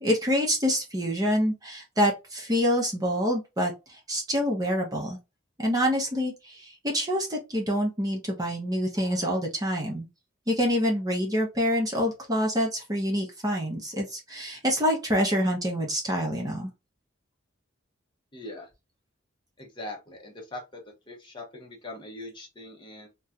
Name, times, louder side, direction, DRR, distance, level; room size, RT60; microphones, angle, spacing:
voice 1, 0.0-5.2 5.6-10.1 10.5-16.7, equal, 20° right, 0.7 m, -26 dB
voice 2, 18.3-18.7 19.6-20.8 21.1-23.1, left 1 dB, 25° left, 0.9 m, -41 dB
4.2 x 2.2 x 2.4 m
head